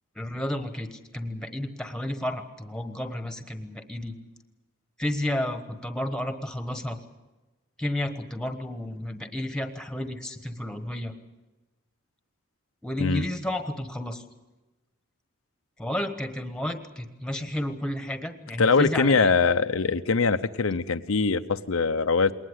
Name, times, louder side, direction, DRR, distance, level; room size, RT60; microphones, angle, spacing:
voice 1, 0.1-4.1 5.0-7.0 7.8-11.1 12.8-14.2 15.8-19.3, left 1 dB, 5° left, 8 dB, 1.2 m, -32 dB
voice 2, 18.6-22.3, left 4 dB, 90° left, 9 dB, 0.8 m, -22 dB
21.5 x 19.5 x 8.1 m, 1.1 s
head